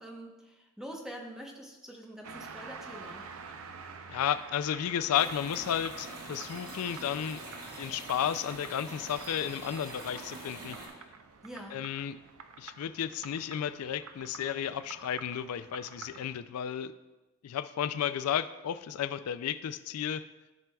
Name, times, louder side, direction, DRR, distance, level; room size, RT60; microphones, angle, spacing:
voice 1, 0.0-3.3 11.4-11.8, equal, 5° right, 0 dB, 0.9 m, -45 dB
sound 1, 2.2-16.4, right 5 dB, 70° right, 0.6 m, -48 dB
voice 2, 4.1-7.4 7.8-10.8 11.7-12.2 12.6-16.9 17.4-20.2, left 9 dB, 80° left, 13 dB, 0.3 m, -33 dB
sound 2, 5.1-10.9, right 2 dB, 90° right, 2.1 m, -45 dB
13.5 x 6.0 x 2.3 m, 1.1 s
head